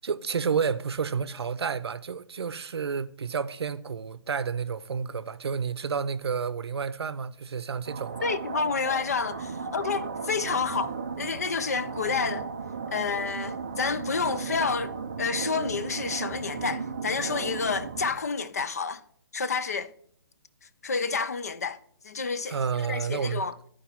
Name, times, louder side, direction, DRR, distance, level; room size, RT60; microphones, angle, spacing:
voice 1, 0.0-8.3 22.5-23.4, right 6 dB, 75° right, 0.7 m, -30 dB
sound 1, 7.9-18.1, right 5 dB, 20° right, 0.4 m, -35 dB
voice 2, 8.2-12.5 12.9-19.0 19.3-19.9 20.8-21.8 22.0-23.5, left 5 dB, 40° left, 0.5 m, -29 dB
12.0 x 4.9 x 4.3 m
hypercardioid pair, 180°, 14 cm